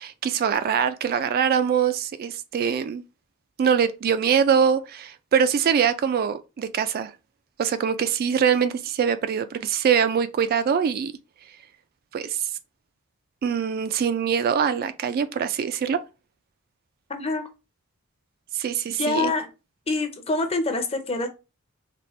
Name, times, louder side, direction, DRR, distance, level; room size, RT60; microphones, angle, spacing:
voice 1, 0.0-3.0 3.6-7.1 7.6-11.1 12.1-12.5 13.4-16.0 18.5-19.3, right 7 dB, 45° right, 0.3 m, -23 dB
voice 2, 17.1-17.5 19.0-19.5 19.9-21.3, left 3 dB, 30° left, 0.6 m, -25 dB
4.2 x 2.2 x 3.2 m
head